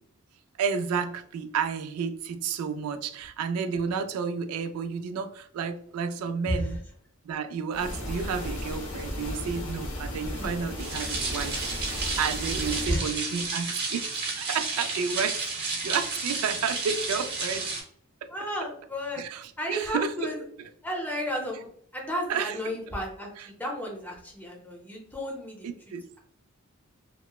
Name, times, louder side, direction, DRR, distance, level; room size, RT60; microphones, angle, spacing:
voice 1, 0.6-6.8 7.2-17.6 18.2-18.3 19.2-19.4 19.7-20.3 22.3-22.5 25.6-26.0, right 6 dB, 85° right, 9 dB, 0.3 m, -31 dB
voice 2, 6.2-6.8 10.3-10.5 12.5-13.0 18.3-19.2 19.6-20.4 20.8-21.7 21.9-25.7, equal, 10° left, -1 dB, 0.6 m, -33 dB
sound 1, 7.7-12.9, left 1 dB, 75° left, 0.7 m, -35 dB
sound 2, 10.8-17.8, right 3 dB, 50° right, 0.8 m, -32 dB
2.9 x 2.0 x 2.2 m, 0.63 s
head